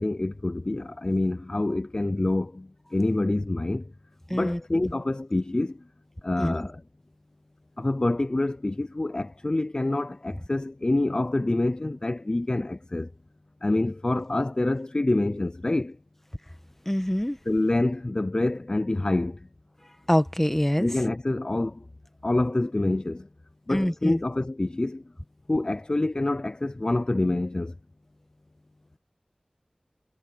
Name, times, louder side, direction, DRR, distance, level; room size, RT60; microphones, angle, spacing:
voice 1, 0.0-3.9 4.3-5.8 6.2-6.8 7.8-13.1 13.6-16.0 17.5-19.5 20.8-21.9 22.2-23.3 23.7-25.0 25.5-27.8, left 2 dB, 40° left, 0.4 m, -26 dB
voice 2, 16.9-17.4 20.1-20.9 23.7-24.2, equal, 15° left, 1.4 m, -24 dB
wide cardioid pair, 50°, 2 cm